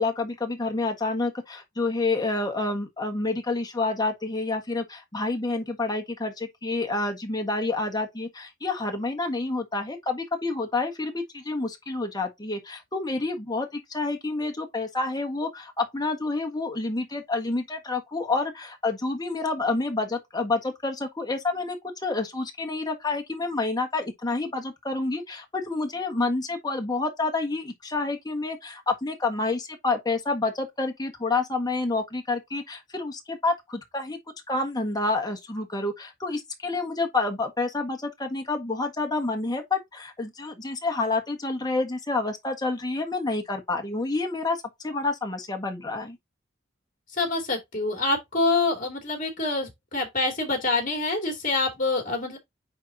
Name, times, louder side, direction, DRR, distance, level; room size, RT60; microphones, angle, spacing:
voice 1, 0.0-34.2 34.5-46.2, left 3 dB, 20° left, 1.5 m, -28 dB
voice 2, 47.2-52.4, left 3 dB, 45° left, 2.7 m, -26 dB
9.4 x 3.8 x 2.8 m
head